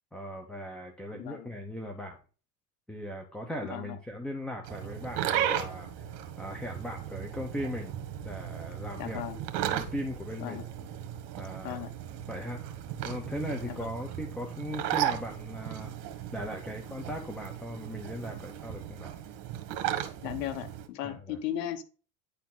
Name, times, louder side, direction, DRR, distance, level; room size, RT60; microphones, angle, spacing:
voice 1, 0.1-2.2 2.9-7.9 8.2-9.2 9.6-10.6 11.3-11.8 12.3-12.8 13.0-19.2 21.0-21.4, equal, ahead, 3 dB, 1.0 m, -38 dB
voice 2, 1.1-1.5 3.7-4.0 9.0-9.4 10.4-10.6 11.6-11.9 13.7-13.9 20.2-21.8, left 11 dB, 85° left, 9 dB, 1.4 m, -36 dB
sound 1, 4.6-20.9, right 11 dB, 60° right, 1.6 m, -36 dB
10.0 x 4.4 x 4.0 m, 0.36 s
supercardioid pair, 120°, 48 cm